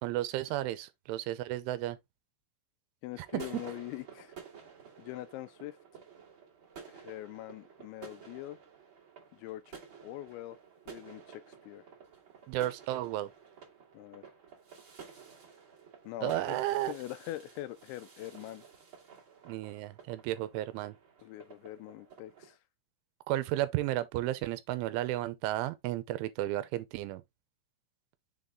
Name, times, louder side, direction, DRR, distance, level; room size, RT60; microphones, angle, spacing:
voice 1, 0.0-2.0 3.3-3.6 12.5-13.3 16.2-16.9 19.5-21.0 23.3-27.2, right 15 dB, 80° right, 3.1 m, -33 dB
voice 2, 3.0-4.3 5.0-6.0 6.9-8.6 9.3-9.8 10.0-10.6 10.9-11.8 13.9-14.3 16.1-18.6 21.2-22.6, left 15 dB, 85° left, 2.7 m, -43 dB
sound 1, 3.1-22.5, right 6 dB, 35° right, 2.0 m, -52 dB
7.1 x 4.0 x 3.6 m
omnidirectional pair, 5.6 m